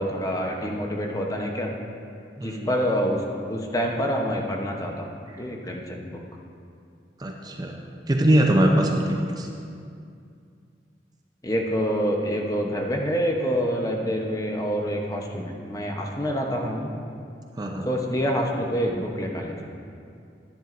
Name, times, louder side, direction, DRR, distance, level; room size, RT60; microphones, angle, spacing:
voice 1, 0.0-1.7 2.4-3.2 3.5-5.0 5.4-6.1 11.4-16.9 17.8-19.7, equal, 20° left, 1 dB, 0.8 m, -26 dB
voice 2, 2.4-2.7 7.2-7.7 8.1-9.5 17.6-17.9, right 1 dB, 25° right, 1 dB, 0.5 m, -22 dB
10.5 x 10.5 x 2.5 m, 2.4 s
head